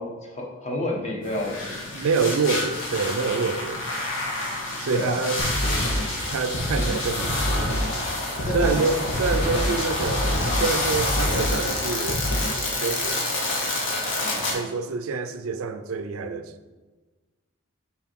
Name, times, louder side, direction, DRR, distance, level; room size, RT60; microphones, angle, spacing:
voice 1, 0.0-1.9 4.9-5.2 8.4-8.8 9.1-9.5 14.2-14.5, left 1 dB, 35° left, 1.1 m, -31 dB
sound 1, 1.2-14.5, left 2 dB, 65° left, 1.4 m, -28 dB
voice 2, 1.9-3.9 4.8-5.5 6.3-7.9 8.5-12.2 12.8-13.4 14.5-16.5, right 4 dB, 75° right, 0.4 m, -27 dB
sound 2, 5.4-12.6, equal, 85° left, 1.8 m, -27 dB
5.6 x 4.4 x 4.5 m
head